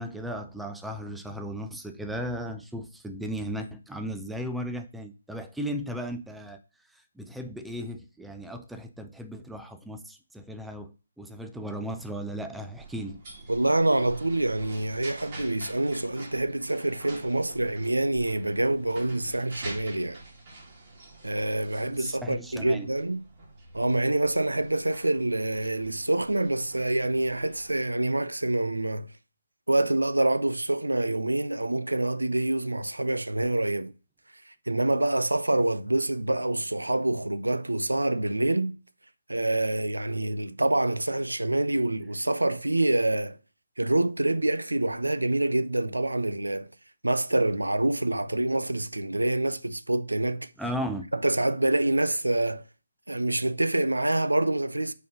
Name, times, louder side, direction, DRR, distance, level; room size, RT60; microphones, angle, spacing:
voice 1, 0.0-6.6 6.9-13.2 21.9-22.9 50.6-51.0, equal, ahead, 0.4 m, -36 dB
sound 1, 12.7-27.8, right 2 dB, 35° right, 2.1 m, -46 dB
voice 2, 13.5-20.2 21.2-23.2 23.7-29.1 29.7-33.9 34.7-38.8 39.3-43.4 43.8-46.7 47.0-50.5 51.2-52.6 53.1-54.9, right 2 dB, 75° right, 0.5 m, -26 dB
5.2 x 4.0 x 5.3 m
figure-of-eight pair, 145°, 0 cm